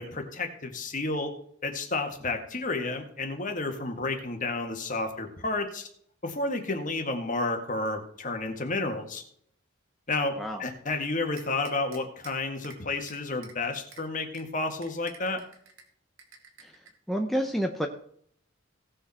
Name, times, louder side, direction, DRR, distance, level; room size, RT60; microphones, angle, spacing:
voice 1, 0.0-1.3 1.6-5.9 6.2-9.2 10.1-15.4, left 2 dB, 40° left, 5 dB, 1.8 m, -31 dB
sound 1, 11.4-12.3 12.6-12.8 13.1-13.5 13.9-14.0 14.3-14.4 14.8-15.8 16.2-16.9, right 5 dB, 85° right, 2.2 m, -49 dB
voice 2, 16.6-17.9, equal, ahead, 2 dB, 0.8 m, -30 dB
17.5 x 6.6 x 4.3 m, 0.64 s
head